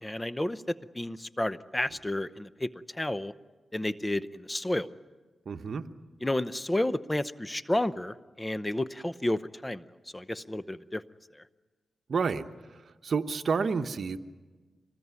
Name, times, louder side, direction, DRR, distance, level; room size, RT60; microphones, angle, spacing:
voice 1, 0.0-2.7 3.0-3.3 3.7-4.9 6.2-9.8 10.1-11.0, left 1 dB, 15° left, 14 dB, 0.7 m, -31 dB
voice 2, 5.5-5.8 12.1-12.5 12.7-14.2, right 5 dB, 65° right, 9 dB, 1.0 m, -30 dB
25.5 x 19.5 x 9.6 m, 1.3 s
cardioid pair, 80°, 0 cm